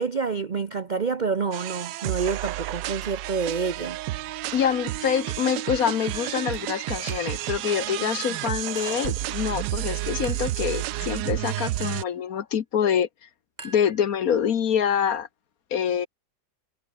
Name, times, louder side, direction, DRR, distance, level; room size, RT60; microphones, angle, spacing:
voice 1, 0.0-4.0 4.4-4.5, right 5 dB, 50° right, 0.5 m, -28 dB
sound 1, 1.5-12.0, right 15 dB, 80° right, 1.3 m, -31 dB
voice 2, 4.5-13.1 13.6-15.3 15.7-16.1, left 8 dB, 55° left, 1.3 m, -25 dB
Chink clink, 6.1-6.7 7.1-7.5 8.2-9.2 10.2-10.6 11.8-12.1 13.6-14.4, right 2 dB, 25° right, 2.4 m, -45 dB
omnidirectional pair, 1.9 m